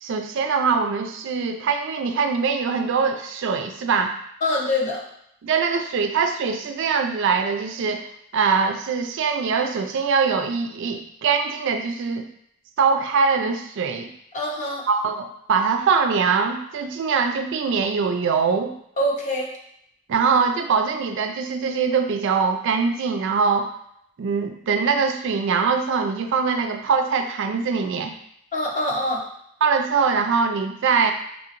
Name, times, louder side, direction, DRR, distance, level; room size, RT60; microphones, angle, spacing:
voice 1, 0.0-4.2 5.4-8.1 8.3-12.2 12.8-14.1 14.9-18.8 20.1-23.7 24.2-28.1 29.6-31.1, right 5 dB, 60° right, 6 dB, 0.3 m, -22 dB
voice 2, 4.4-5.0 14.3-14.8 19.0-19.5 28.5-29.2, left 1 dB, 35° left, -3 dB, 0.7 m, -24 dB
4.7 x 2.8 x 2.5 m, 0.74 s
head